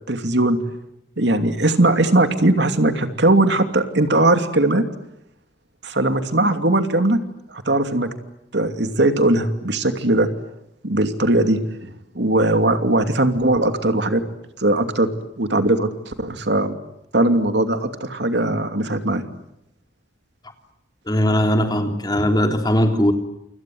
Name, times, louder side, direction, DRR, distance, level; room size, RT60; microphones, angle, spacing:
voice 1, 0.1-0.6 1.2-4.8 5.8-7.2 7.5-8.1 8.5-10.3 10.8-14.2 14.6-15.1 15.4-16.8 17.1-19.2, right 2 dB, 70° right, 8 dB, 2.7 m, -19 dB
voice 2, 21.1-23.1, equal, 20° left, 5 dB, 3.4 m, -19 dB
29.0 x 26.0 x 7.8 m, 0.83 s
head